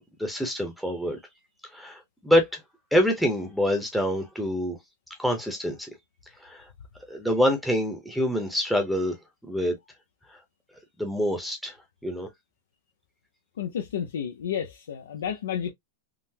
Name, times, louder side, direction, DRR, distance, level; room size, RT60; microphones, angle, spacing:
voice 1, 0.2-1.2 1.7-2.6 2.9-4.8 5.2-5.9 6.4-6.6 7.1-9.2 9.5-9.7 11.0-11.7 12.0-12.3, equal, ahead, 0.8 m, -26 dB
voice 2, 13.6-15.7, left 8 dB, 90° left, 0.5 m, -31 dB
3.7 x 2.0 x 2.7 m
supercardioid pair, 140°, 0 cm